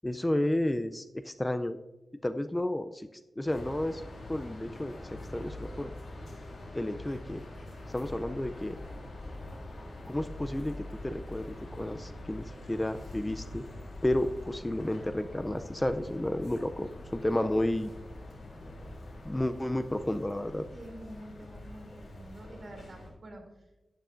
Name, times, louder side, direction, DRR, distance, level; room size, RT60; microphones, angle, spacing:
voice 1, 0.0-1.8 2.2-3.1 3.4-4.0 4.3-4.9 5.3-5.9 6.7-7.4 7.9-8.8 10.1-10.8 11.0-13.6 14.0-17.9 19.2-20.7, left 1 dB, 15° left, 9 dB, 0.4 m, -31 dB
sound 1, 3.5-23.1, left 1 dB, 85° left, 3.5 m, -45 dB
sound 2, 7.9-19.4, left 1 dB, 65° left, 0.8 m, -48 dB
voice 2, 20.7-23.4, right 1 dB, 55° right, 2 dB, 2.7 m, -47 dB
12.0 x 9.3 x 2.5 m, 1.0 s
wide cardioid pair, 105°, 0 cm